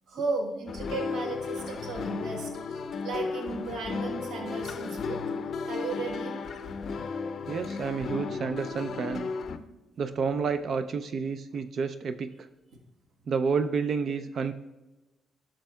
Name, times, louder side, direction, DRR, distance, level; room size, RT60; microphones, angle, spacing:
voice 1, 0.1-5.2 5.6-6.4 12.7-12.8, right 4 dB, 75° right, 1 dB, 1.2 m, -35 dB
sound 1, 0.7-9.6, left 5 dB, 50° left, 0.5 m, -34 dB
voice 2, 7.5-9.3 10.0-12.3 13.3-14.5, right 5 dB, 50° right, 10 dB, 0.3 m, -30 dB
11.5 x 6.3 x 2.2 m, 1.1 s
cardioid pair, 115°, 0 cm